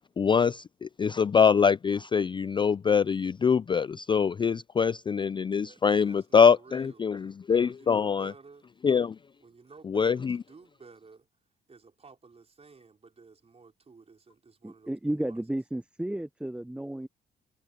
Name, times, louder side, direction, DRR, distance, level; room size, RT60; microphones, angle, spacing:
voice 1, 0.2-8.3 8.8-9.2 9.9-10.4, left 6 dB, 25° left, 0.3 m, -24 dB
voice 2, 5.6-7.0 7.6-8.7 9.4-11.3 11.7-15.4, right 4 dB, 30° right, 5.2 m, -53 dB
voice 3, 14.6-17.1, right 1 dB, 5° right, 0.7 m, -33 dB
cardioid pair, 90°, 20 cm